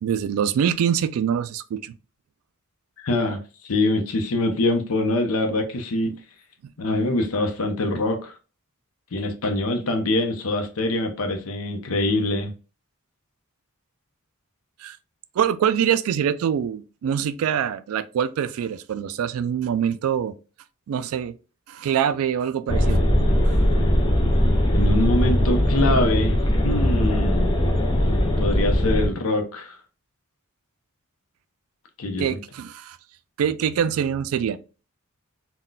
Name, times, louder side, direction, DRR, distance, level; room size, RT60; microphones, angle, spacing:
voice 1, 0.0-1.9 6.1-6.2 14.8-15.0 15.4-20.3 20.9-21.3 21.7-23.1 23.5-23.6 32.2-33.0 33.4-34.6, right 8 dB, 85° right, 0.3 m, -24 dB
voice 2, 3.0-3.4 3.7-6.1 6.8-8.3 9.1-12.5 24.7-26.4 26.6-27.6 28.4-29.8 32.0-32.4, left 2 dB, 85° left, 0.6 m, -24 dB
sound 1, 22.7-29.1, equal, 20° left, 0.4 m, -20 dB
3.8 x 2.2 x 2.2 m
head